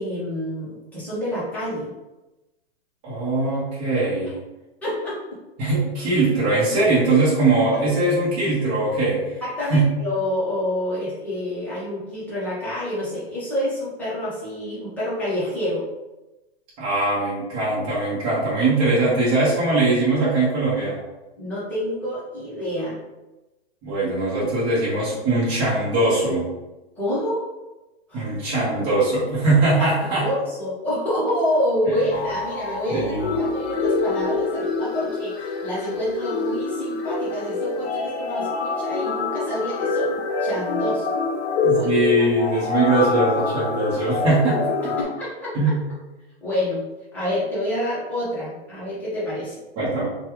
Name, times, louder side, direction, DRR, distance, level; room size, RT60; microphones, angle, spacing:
voice 1, 0.0-1.9 4.3-4.4 4.8-5.2 9.4-15.8 21.4-23.0 27.0-27.4 28.1-28.2 30.2-41.2 41.7-42.6 45.0-45.7 46.4-46.8 47.1-49.6, left 1 dB, 5° left, -10 dB, 0.8 m, -28 dB
voice 2, 3.0-4.4 5.6-9.2 9.7-9.8 16.8-21.0 23.8-26.5 28.1-30.3 32.9-33.3 41.6-45.0 45.5-45.8 49.8-50.1, right 2 dB, 25° right, -10 dB, 1.1 m, -21 dB
sound 1, 32.1-45.0, left 4 dB, 70° left, 0.7 m, -26 dB
3.0 x 2.4 x 3.0 m, 1.0 s
hypercardioid pair, 150°, 32 cm